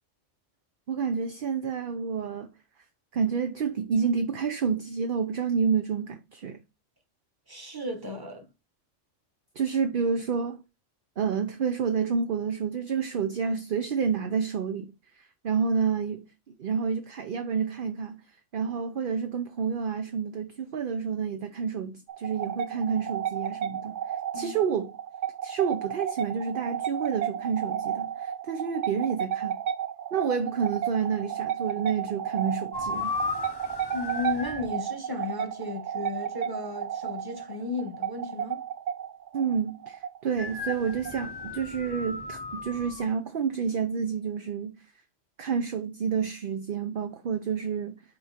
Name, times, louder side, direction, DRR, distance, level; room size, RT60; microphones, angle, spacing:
voice 1, 0.9-2.5 3.1-6.6 9.6-10.6 11.2-16.3 16.6-18.2 18.5-24.9 25.4-29.5 30.1-33.1 39.3-44.8 45.4-48.0, right 6 dB, 55° right, 0.7 m, -29 dB
voice 2, 7.5-8.5 24.3-24.6 33.9-38.6, left 3 dB, 20° right, 1.3 m, -34 dB
sound 1, 22.1-41.5, right 9 dB, 75° right, 1.0 m, -33 dB
sound 2, 32.7-34.7 40.4-43.1, left 3 dB, 25° left, 0.6 m, -35 dB
5.5 x 4.5 x 4.3 m
omnidirectional pair, 1.3 m